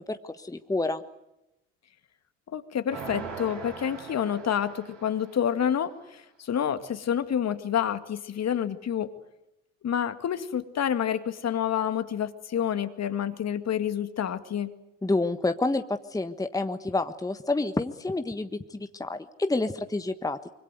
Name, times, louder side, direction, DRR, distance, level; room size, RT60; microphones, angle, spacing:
voice 1, 0.1-1.0 15.0-20.4, left 2 dB, 10° left, 9 dB, 1.4 m, -29 dB
voice 2, 2.5-9.1 9.8-14.7, left 9 dB, 45° left, 10 dB, 2.1 m, -28 dB
sound 1, 2.9-5.6, right 4 dB, 90° right, 4.4 m, -41 dB
25.5 x 24.5 x 8.1 m, 0.90 s
hypercardioid pair, 55°, 37 cm